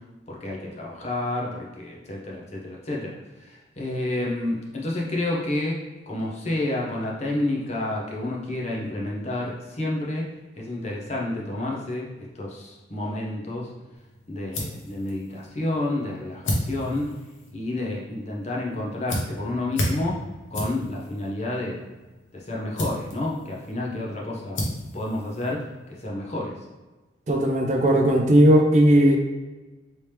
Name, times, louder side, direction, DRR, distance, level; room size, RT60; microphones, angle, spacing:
voice 1, 0.3-10.3 10.6-12.1 12.3-13.7 14.3-17.1 17.5-20.2 20.5-21.9 22.3-24.6 24.9-25.6 26.0-26.6, left 1 dB, 35° left, -3 dB, 0.7 m, -30 dB
sound 1, 13.9-26.1, left 1 dB, 90° left, 0.9 m, -34 dB
voice 2, 27.3-29.2, right 1 dB, 40° right, 2 dB, 0.4 m, -17 dB
3.2 x 2.9 x 3.3 m, 1.2 s
head